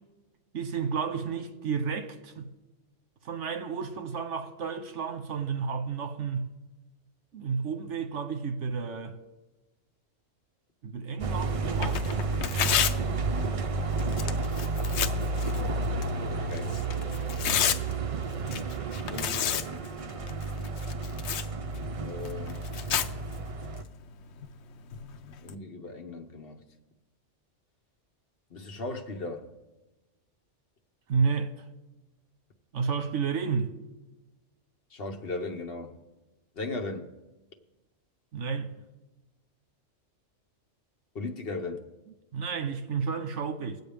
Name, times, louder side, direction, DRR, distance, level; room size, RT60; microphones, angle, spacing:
voice 1, 0.5-2.5 3.2-6.5 7.3-9.2 10.8-12.1 31.1-31.5 32.7-33.7 38.3-38.7 42.3-43.8, right 5 dB, 80° right, 1.2 m, -31 dB
sound 1, 11.2-23.8, right 3 dB, 60° right, 0.3 m, -31 dB
Tearing, 11.7-25.5, left 9 dB, 70° left, 0.9 m, -34 dB
voice 2, 16.3-16.7 19.1-20.3 22.0-22.6 25.4-26.6 28.5-29.5 34.9-36.0 36.5-37.1 41.1-41.8, left 3 dB, 55° left, 1.2 m, -37 dB
20.5 x 8.1 x 3.5 m
omnidirectional pair, 1.2 m